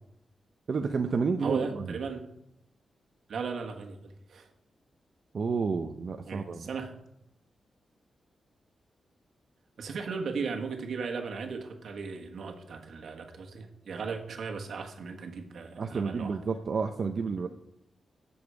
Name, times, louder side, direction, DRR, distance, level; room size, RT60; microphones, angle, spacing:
voice 1, 0.7-2.0 5.3-6.7 15.8-17.5, right 5 dB, 50° right, 5 dB, 0.6 m, -30 dB
voice 2, 1.4-2.2 3.3-4.5 6.3-7.0 9.8-16.4, right 5 dB, 70° right, 3 dB, 1.4 m, -36 dB
8.2 x 7.1 x 8.1 m, 0.80 s
wide cardioid pair, 150°, 0 cm